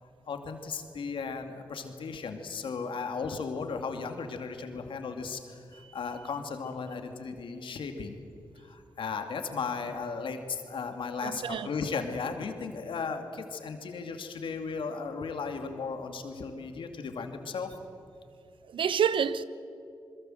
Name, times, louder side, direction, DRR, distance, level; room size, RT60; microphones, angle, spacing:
voice 1, 0.0-8.2 8.6-17.8, left 5 dB, 75° left, 2.5 m, -36 dB
voice 2, 11.2-11.7 18.7-19.4, right 8 dB, 80° right, 0.9 m, -28 dB
28.5 x 21.5 x 7.9 m
supercardioid pair, 45°, 9 cm